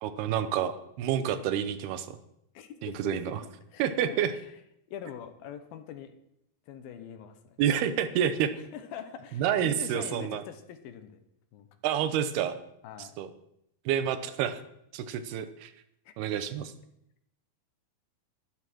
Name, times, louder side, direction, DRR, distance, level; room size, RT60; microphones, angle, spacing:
voice 1, 0.0-2.2 2.8-3.4 3.8-4.3 7.6-8.5 9.4-10.4 11.8-12.6 13.2-13.3 13.9-14.6 14.9-15.7 16.2-16.7, right 9 dB, 80° right, 11 dB, 2.9 m, -28 dB
voice 2, 2.5-3.4 3.7-4.6 4.9-6.1 6.7-7.6 8.5-11.2 11.5-11.7 12.8-13.1 16.1-16.2, left 8 dB, 70° left, 9 dB, 2.8 m, -43 dB
12.0 x 11.5 x 6.2 m, 0.77 s
omnidirectional pair, 4.6 m